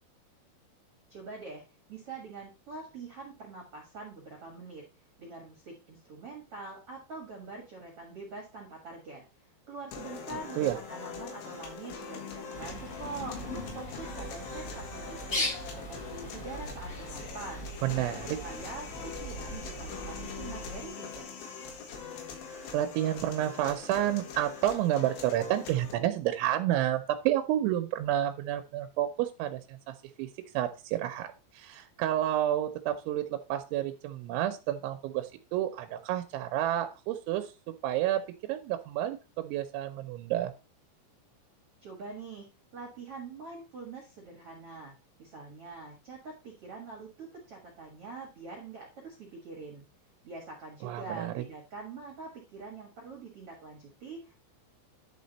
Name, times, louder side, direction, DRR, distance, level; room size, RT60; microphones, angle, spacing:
voice 1, 1.1-1.6 1.9-4.8 5.2-9.2 9.7-13.4 13.7-17.7 18.4-21.5 41.8-44.9 45.2-49.8 50.2-54.3, right 3 dB, 55° right, 0 dB, 1.7 m, -44 dB
sound 1, 9.9-25.9, left 6 dB, 85° left, 4.1 m, -43 dB
sound 2, 12.4-15.4, left 4 dB, 50° left, 3.5 m, -46 dB
Bird, 12.5-20.9, equal, 35° left, 1.4 m, -40 dB
voice 2, 17.8-18.4 22.7-30.3 30.5-40.5 50.8-51.4, right 12 dB, 90° right, 8 dB, 3.1 m, -30 dB
11.0 x 4.3 x 4.0 m, 0.30 s
omnidirectional pair, 5.2 m